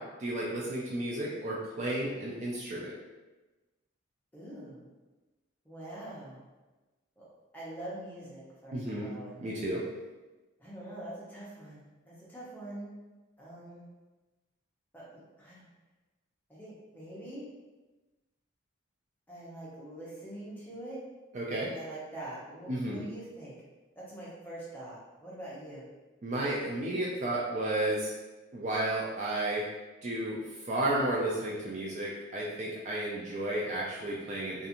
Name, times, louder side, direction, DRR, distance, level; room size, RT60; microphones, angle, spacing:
voice 1, 0.0-2.9 8.7-9.1 9.4-9.8 21.3-21.7 22.7-23.1 26.2-28.1 28.5-29.7 30.0-30.4 30.7-34.7, right 1 dB, 35° right, -4 dB, 0.3 m, -32 dB
voice 2, 4.3-4.8 5.7-6.4 7.2-7.3 7.5-9.4 10.6-12.9 13.4-13.8 14.9-15.7 16.5-17.4 19.3-21.0 21.6-23.6 24.0-25.9, right 1 dB, 10° left, -8 dB, 0.7 m, -44 dB
2.4 x 2.4 x 2.8 m, 1.2 s
head